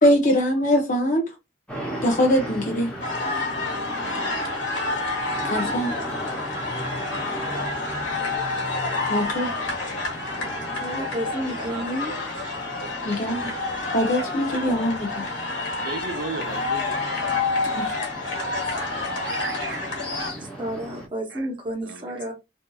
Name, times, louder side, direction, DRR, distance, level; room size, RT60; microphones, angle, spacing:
voice 1, 0.0-1.2 2.0-2.9 5.4-5.9 9.1-9.5 13.1-13.6 13.9-15.3 17.6-18.0, equal, 45° left, 0.5 m, -22 dB
sound 1, 1.7-21.1, equal, 5° left, 0.7 m, -37 dB
sound 2, 3.0-20.3, left 3 dB, 85° left, 1.2 m, -29 dB
voice 2, 10.7-12.1 20.6-22.3, equal, 25° right, 0.8 m, -31 dB
voice 3, 11.5-13.2 13.4-13.5 15.8-17.2 19.0-19.8 21.3-21.5 21.8-22.3, right 4 dB, 70° right, 0.5 m, -37 dB
2.6 x 2.4 x 2.3 m
head